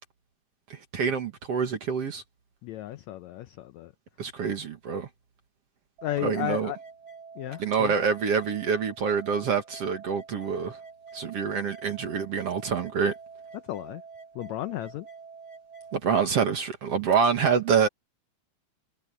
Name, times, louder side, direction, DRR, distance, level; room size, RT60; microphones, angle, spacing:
voice 1, 0.7-2.2 4.2-5.1 6.2-6.7 7.6-10.8 11.1-13.1 15.9-17.9, right 6 dB, 55° right, 2.3 m, -26 dB
voice 2, 2.6-3.9 6.0-6.8 7.4-7.9 13.5-14.0 14.3-15.1, left 14 dB, 80° left, 1.6 m, -34 dB
sound 1, 6.0-16.0, right 5 dB, 35° right, 5.8 m, -47 dB
omnidirectional pair, 3.9 m